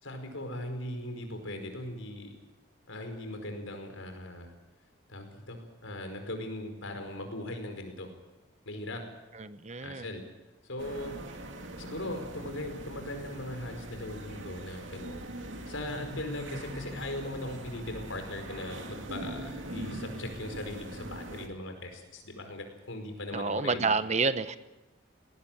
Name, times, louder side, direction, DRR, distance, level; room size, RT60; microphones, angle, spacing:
voice 1, 0.0-2.4 2.9-4.5 5.1-8.1 8.6-9.0 9.8-10.2 10.6-11.2 11.8-15.2 15.7-24.0, left 1 dB, 90° left, 5 dB, 4.9 m, -39 dB
voice 2, 9.3-10.1 23.3-24.6, right 4 dB, 35° right, 12 dB, 0.9 m, -29 dB
sound 1, 10.8-21.5, right 1 dB, 70° right, 2.6 m, -42 dB
20.0 x 18.0 x 9.0 m, 1.0 s
head